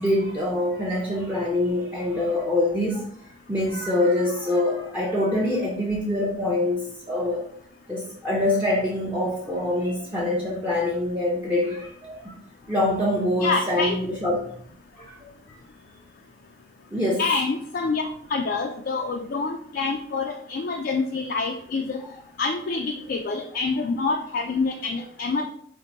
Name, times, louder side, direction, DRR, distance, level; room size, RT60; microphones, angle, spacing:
voice 1, 0.0-3.1 3.5-7.5 7.9-12.4 12.7-14.5 15.0-15.3 16.9-17.2, left 1 dB, 10° right, -3 dB, 0.6 m, -25 dB
voice 2, 13.4-14.0 17.2-22.0 22.4-25.5, left 4 dB, 50° left, 3 dB, 0.3 m, -26 dB
4.4 x 2.6 x 3.9 m, 0.63 s
head